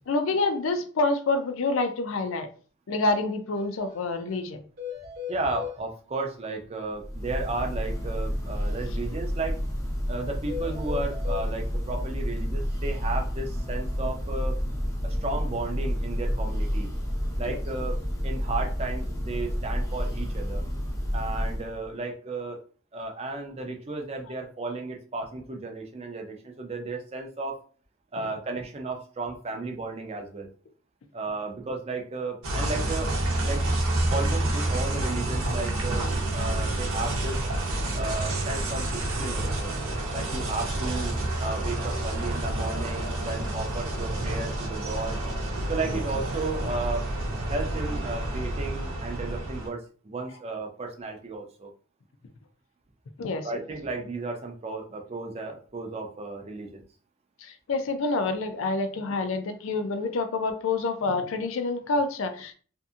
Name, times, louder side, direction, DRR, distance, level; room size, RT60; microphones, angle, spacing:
voice 1, 0.1-2.5 2.9-4.6 17.5-17.6 45.9-46.0 53.2-53.5 57.4-62.5, left 3 dB, 65° left, 7 dB, 0.4 m, -27 dB
sound 1, 3.5-3.6 3.9-4.0 4.3-4.4 4.8-5.8 10.5-11.5, left 9 dB, 45° right, 0.8 m, -37 dB
voice 2, 5.3-9.6 10.1-14.6 15.0-16.9 17.4-18.0 18.2-20.6 21.1-22.6 22.9-27.6 28.1-30.5 31.1-33.1 33.4-33.6 34.1-36.1 36.3-37.5 37.9-39.7 40.1-41.1 41.4-45.2 45.7-47.1 47.4-51.7 53.4-56.8, right 3 dB, 30° right, 3 dB, 0.4 m, -34 dB
Church bell, 6.9-21.9, equal, 15° left, 0.6 m, -30 dB
sound 2, 32.4-49.7, right 1 dB, 80° right, 0.7 m, -29 dB
2.7 x 2.5 x 2.4 m, 0.41 s
head